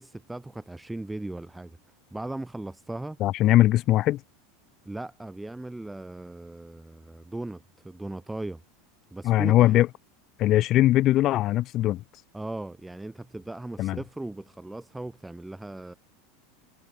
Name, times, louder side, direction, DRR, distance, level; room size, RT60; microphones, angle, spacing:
voice 1, 0.0-1.8 2.1-3.2 4.8-8.6 9.1-9.8 12.3-15.9, right 2 dB, 5° right, 3.1 m, -38 dB
voice 2, 3.2-4.2 9.2-9.9 10.4-12.0 13.8-14.0, left 14 dB, 45° left, 2.7 m, -20 dB
hypercardioid pair, 85°, 0 cm